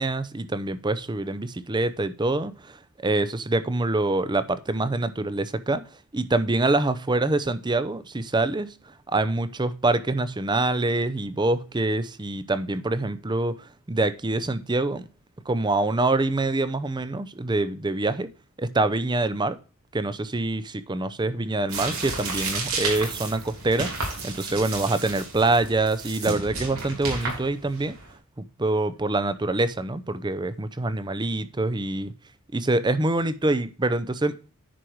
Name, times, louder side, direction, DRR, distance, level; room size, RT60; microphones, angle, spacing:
voice 1, 0.0-2.8 3.0-5.8 6.1-8.7 9.1-13.6 13.9-15.1 15.5-18.3 18.6-19.6 19.9-23.9 24.2-27.9 28.6-32.1 32.5-34.4, right 2 dB, 20° right, 0.6 m, -25 dB
sound 1, 21.7-28.1, right 3 dB, 90° right, 3.4 m, -32 dB
10.0 x 4.7 x 4.7 m
head